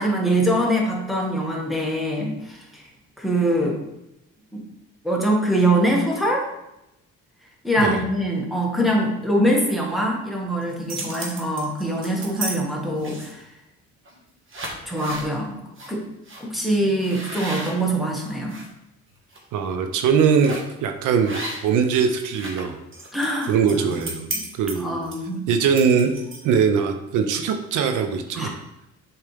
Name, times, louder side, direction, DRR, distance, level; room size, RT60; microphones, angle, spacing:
voice 1, 0.0-2.8 3.2-3.8 4.5-4.6 5.0-6.5 7.6-13.4 14.9-15.6 15.9-16.0 16.4-18.6 23.1-24.4 24.8-25.5 28.3-28.5, right 1 dB, ahead, -2 dB, 1.7 m, -23 dB
sound 1, 10.6-12.5 13.0-13.5 14.0-14.2 14.5-15.3 15.8-15.9 16.3-16.4 17.0-18.7 19.1-19.4 20.4-20.7 21.2-21.8 22.1-26.6, right 2 dB, 40° right, 1.6 m, -34 dB
voice 2, 19.5-22.8 23.5-24.3 24.6-25.0 25.5-26.1 26.4-28.5, right 6 dB, 85° right, 6 dB, 0.7 m, -21 dB
7.2 x 4.4 x 3.4 m, 0.88 s
cardioid pair, 90°, 30 cm